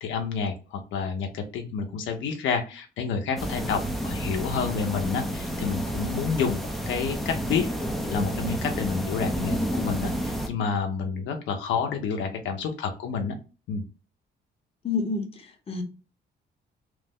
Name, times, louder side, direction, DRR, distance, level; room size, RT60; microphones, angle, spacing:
voice 1, 0.0-7.7 8.1-13.3 13.7-13.8, left 5 dB, 85° left, 0.7 m, -29 dB
sound 1, 3.4-10.5, equal, ahead, 0.5 m, -30 dB
voice 2, 14.8-15.8, left 4 dB, 30° left, 0.9 m, -29 dB
3.1 x 2.1 x 3.5 m
cardioid pair, 115°, 19 cm